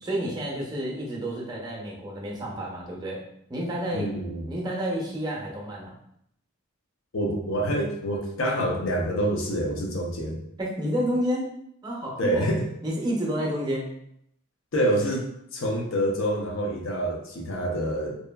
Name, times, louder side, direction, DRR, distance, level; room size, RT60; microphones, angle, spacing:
voice 1, 0.0-3.2 3.5-5.9 10.6-11.5 11.8-12.5 12.8-13.9, equal, 20° right, -3 dB, 0.6 m, -30 dB
voice 2, 3.9-4.5 7.1-10.4 12.2-12.6 14.7-18.1, equal, 70° left, 0 dB, 0.6 m, -27 dB
2.7 x 2.3 x 2.2 m, 0.74 s
head